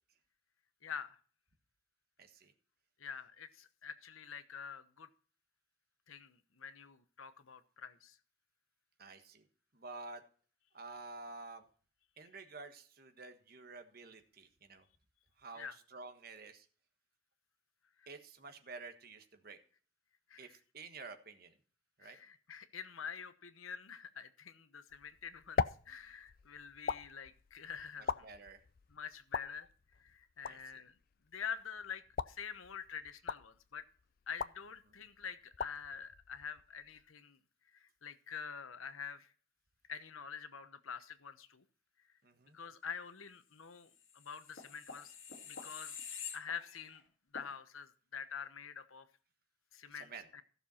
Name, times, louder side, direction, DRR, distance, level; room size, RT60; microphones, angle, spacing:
voice 1, 0.8-1.2 3.0-5.1 6.1-8.2 15.6-15.8 18.0-18.1 20.3-20.5 22.0-28.3 28.9-29.7 30.0-31.0 31.3-33.8 34.3-37.4 37.7-39.3 39.9-41.6 42.5-45.1 45.5-46.0 46.3-47.0 47.3-49.1 49.7-50.4, left 7 dB, 90° left, 11 dB, 1.0 m, -46 dB
voice 2, 2.2-2.5 9.0-9.4 9.7-10.2 10.7-11.6 12.2-14.9 15.4-16.7 18.1-19.6 20.4-21.5 22.0-22.2 28.2-28.6 30.4-30.6 42.2-42.6 49.9-50.3, right 3 dB, 50° right, 7 dB, 1.4 m, -50 dB
sound 1, 24.9-37.1, left 5 dB, 45° left, 0.4 m, -43 dB
sound 2, 44.0-47.0 47.3-47.5, left 6 dB, 70° left, 2.2 m, -47 dB
15.0 x 6.8 x 4.3 m, 0.43 s
head